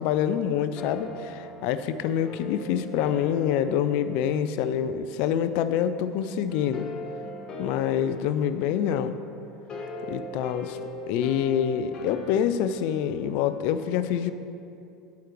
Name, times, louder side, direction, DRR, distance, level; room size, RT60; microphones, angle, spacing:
voice 1, 0.0-6.9 7.6-9.2 10.1-10.8 11.1-14.3, left 9 dB, 55° left, 12 dB, 0.4 m, -26 dB
sound 1, 0.7-5.3 6.5-13.7, left 2 dB, 35° left, 1.2 m, -41 dB
8.9 x 8.3 x 3.0 m, 2.6 s
figure-of-eight pair, 75°, 2 cm